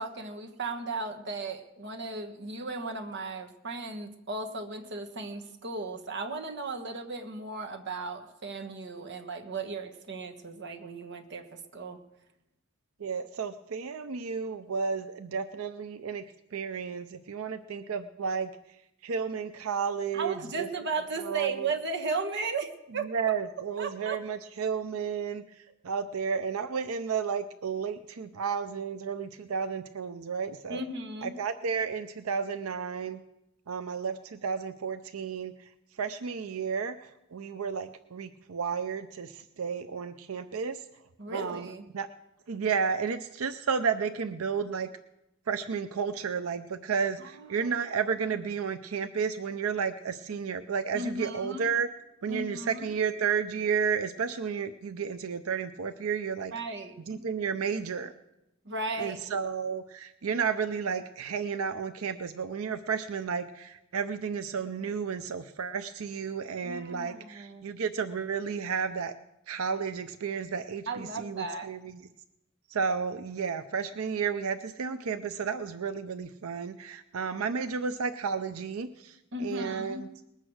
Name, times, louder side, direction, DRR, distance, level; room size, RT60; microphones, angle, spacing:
voice 1, 0.0-12.0 20.1-23.3 23.8-24.2 30.7-31.4 41.2-41.8 47.2-47.7 50.9-51.7 52.3-52.9 56.5-57.2 58.6-59.2 66.6-67.7 70.9-71.7 79.3-80.0, right 3 dB, 55° right, 4 dB, 1.3 m, -36 dB
voice 2, 13.0-16.2 16.5-18.5 19.0-20.7 21.2-21.7 23.0-25.4 25.8-30.8 31.2-33.2 33.7-35.5 36.0-40.8 41.3-41.7 41.9-42.1 42.5-44.9 45.5-51.9 52.2-56.5 57.1-58.1 59.0-69.1 69.5-71.9 72.7-80.1, right 6 dB, 90° right, 10 dB, 0.6 m, -32 dB
20.0 x 8.2 x 6.3 m, 0.91 s
head